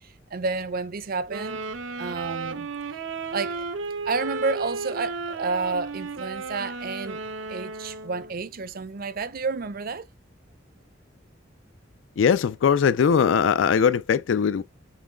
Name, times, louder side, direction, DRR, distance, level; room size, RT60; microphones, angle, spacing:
voice 1, 0.3-1.6 2.0-2.7 3.3-3.6 4.0-7.2 7.5-10.1, right 4 dB, 50° right, 0.6 m, -30 dB
sound 1, 1.3-8.3, right 3 dB, 80° right, 0.8 m, -34 dB
voice 2, 12.2-14.6, left 7 dB, 80° left, 0.4 m, -20 dB
7.2 x 3.1 x 2.2 m
head